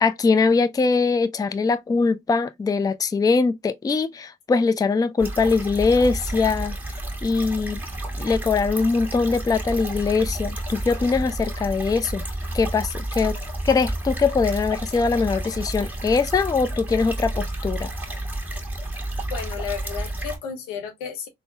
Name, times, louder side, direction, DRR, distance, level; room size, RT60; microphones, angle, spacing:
voice 1, 0.0-6.8 7.2-7.8 8.2-12.2 12.5-13.4 13.6-17.9, left 4 dB, 15° left, 0.4 m, -22 dB
sound 1, 5.2-20.4, right 1 dB, 5° right, 1.4 m, -30 dB
voice 2, 19.3-21.3, left 7 dB, 85° left, 0.7 m, -33 dB
3.7 x 2.1 x 2.5 m
hypercardioid pair, 50°, 29 cm